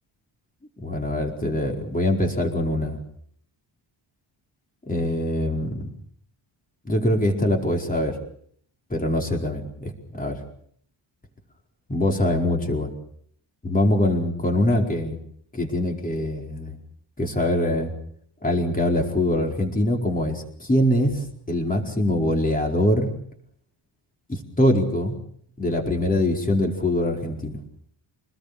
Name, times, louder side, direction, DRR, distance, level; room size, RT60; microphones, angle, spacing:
voice 1, 0.8-3.0 4.9-5.8 6.8-8.2 8.9-9.9 10.2-10.4 11.9-12.9 13.6-15.2 15.5-16.8 17.2-17.9 18.4-23.1 24.3-25.1 25.6-27.6, left 1 dB, 15° left, 2 dB, 4.6 m, -23 dB
27.0 x 20.0 x 6.9 m, 0.64 s
cardioid pair, 140°, 47 cm